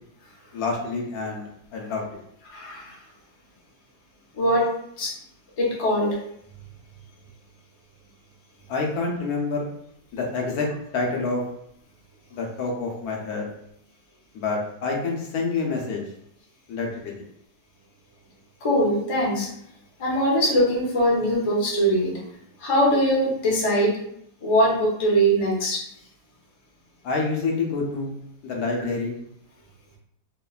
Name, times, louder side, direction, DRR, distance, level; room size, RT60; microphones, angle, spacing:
voice 1, 0.5-2.1 8.7-9.7 10.1-10.7 10.9-11.4 12.3-13.5 14.3-16.0 16.7-17.1 27.0-28.1 28.4-29.2, left 3 dB, 75° left, 0 dB, 1.1 m, -27 dB
voice 2, 2.5-3.0 4.3-5.1 5.6-6.2 18.6-19.5 20.0-22.2 22.6-24.0 24.4-25.8, equal, 55° left, -4 dB, 0.3 m, -22 dB
3.1 x 2.1 x 2.3 m, 0.71 s
omnidirectional pair, 1.7 m